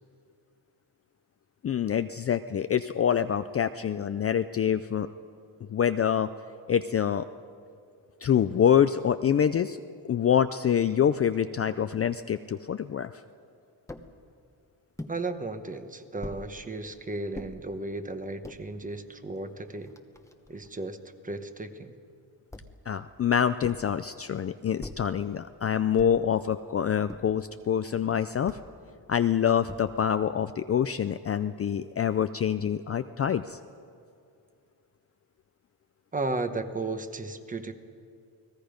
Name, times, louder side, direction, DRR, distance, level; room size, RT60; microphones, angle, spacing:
voice 1, 1.6-5.1 5.7-6.3 6.7-7.3 8.2-9.8 10.0-13.1 22.9-28.6 29.1-33.6, left 8 dB, 35° left, 10 dB, 0.4 m, -26 dB
sound 1, 13.9-14.1 15.0-15.2 16.2-16.5 17.3-17.5 18.2-18.6 19.4-19.5 19.7-20.7 22.5-22.9 23.6-23.9 24.8-25.1 26.0-26.3 27.1-27.4 28.5-28.7 29.7-30.1, left 2 dB, 5° left, 0.9 m, -42 dB
voice 2, 15.1-19.9 20.5-21.0 21.2-21.9 36.1-37.7, right 2 dB, 20° right, 8 dB, 1.1 m, -34 dB
29.5 x 19.5 x 5.2 m, 2.4 s
wide cardioid pair, 155°, 42 cm